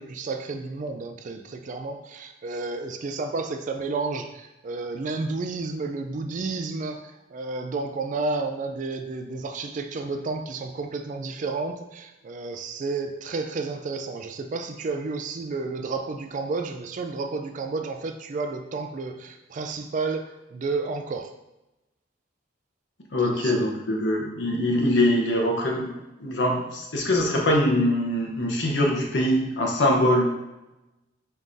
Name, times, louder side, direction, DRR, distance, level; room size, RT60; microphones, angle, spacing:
voice 1, 0.0-21.3 23.2-23.6, right 3 dB, 45° right, 6 dB, 0.3 m, -31 dB
voice 2, 23.1-25.9 26.2-30.3, left 1 dB, 70° left, 0 dB, 0.9 m, -23 dB
4.6 x 3.7 x 2.6 m, 0.97 s
head